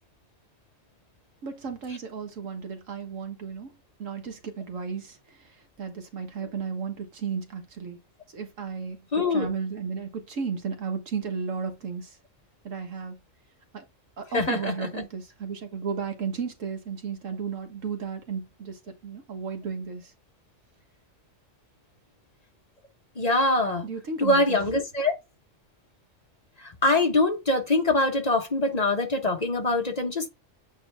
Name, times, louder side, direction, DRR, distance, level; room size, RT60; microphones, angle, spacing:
voice 1, 1.4-3.7 4.0-8.0 8.3-12.2 12.6-13.2 13.7-13.8 14.2-20.1 23.8-24.6, right 5 dB, 85° right, 1.6 m, -34 dB
voice 2, 9.1-9.5 14.3-14.6 23.2-23.8 24.2-25.1 26.8-30.3, left 2 dB, 35° left, 1.1 m, -23 dB
8.6 x 3.3 x 3.4 m
omnidirectional pair, 1.3 m